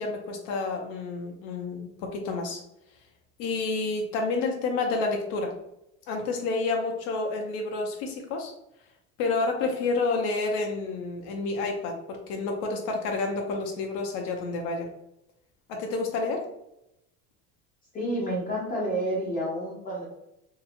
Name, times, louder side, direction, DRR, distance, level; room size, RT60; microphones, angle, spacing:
voice 1, 0.0-2.6 3.4-5.5 6.1-8.5 9.2-14.9 15.7-16.5, left 3 dB, 75° left, 2 dB, 0.6 m, -29 dB
voice 2, 17.9-20.0, right 1 dB, 25° left, -4 dB, 0.6 m, -29 dB
2.8 x 2.3 x 2.4 m, 0.84 s
cardioid pair, 155°, 35 cm